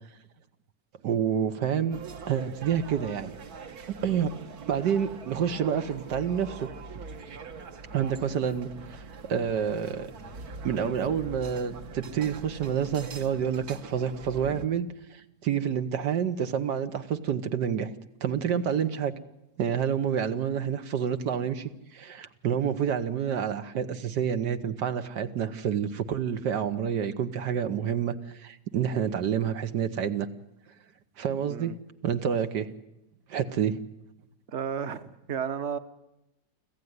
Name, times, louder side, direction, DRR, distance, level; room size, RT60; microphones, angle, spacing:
voice 1, 1.0-2.0 2.3-3.3 3.9-4.3 4.7-6.6 7.3-7.4 7.9-9.0 9.3-10.1 10.6-17.9 18.2-19.1 19.6-30.3 31.2-31.7 32.0-32.7 33.3-33.8, right 8 dB, 80° right, 8 dB, 1.7 m, -28 dB
sound 1, 1.9-14.7, right 4 dB, 65° right, 1.8 m, -43 dB
voice 2, 34.5-35.8, right 7 dB, 45° right, 10 dB, 1.3 m, -33 dB
26.0 x 15.0 x 9.5 m, 0.89 s
omnidirectional pair, 1.8 m